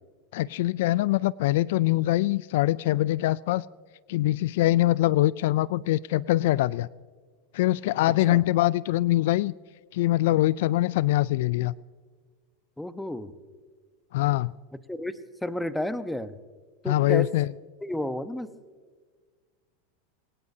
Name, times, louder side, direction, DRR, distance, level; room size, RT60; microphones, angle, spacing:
voice 1, 0.3-3.6 4.1-6.9 7.5-9.5 9.9-11.7 14.1-14.5 16.9-17.5, left 16 dB, 70° left, 21 dB, 0.3 m, -23 dB
voice 2, 12.8-13.3 14.9-16.4 16.8-17.3 17.8-18.5, left 1 dB, 5° left, 11 dB, 1.0 m, -32 dB
22.5 x 18.5 x 2.8 m, 1.5 s
hypercardioid pair, 100°, 0 cm